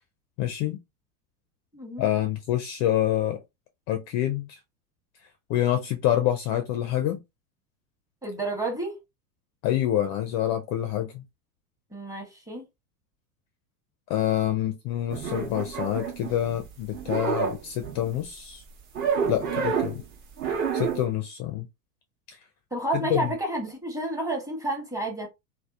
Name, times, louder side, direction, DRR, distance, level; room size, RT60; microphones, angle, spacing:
voice 1, 0.4-0.8 2.0-3.4 3.9-4.6 5.5-7.2 9.6-11.2 14.1-18.6 19.3-20.0 20.7-21.7 23.1-23.3, left 12 dB, 40° left, 0.4 m, -27 dB
voice 2, 1.7-2.1 8.2-9.0 11.9-12.6 22.7-25.3, right 2 dB, 10° right, 1.0 m, -30 dB
sound 1, 15.1-16.7 16.9-18.2 18.9-20.0 20.4-21.0, right 6 dB, 40° right, 0.9 m, -29 dB
2.7 x 2.1 x 2.3 m
hypercardioid pair, 90°, 45 cm